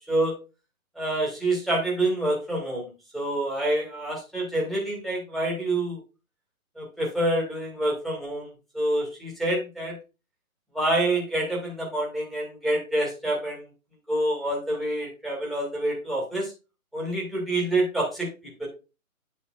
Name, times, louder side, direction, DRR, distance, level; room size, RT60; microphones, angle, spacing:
voice 1, 1.0-6.0 6.8-8.5 8.7-9.9 10.7-13.6 14.1-16.5 16.9-18.3 18.6-18.7, right 1 dB, ahead, -4 dB, 2.2 m, -27 dB
9.6 x 5.4 x 2.2 m, 0.29 s
figure-of-eight pair, 135°, 41 cm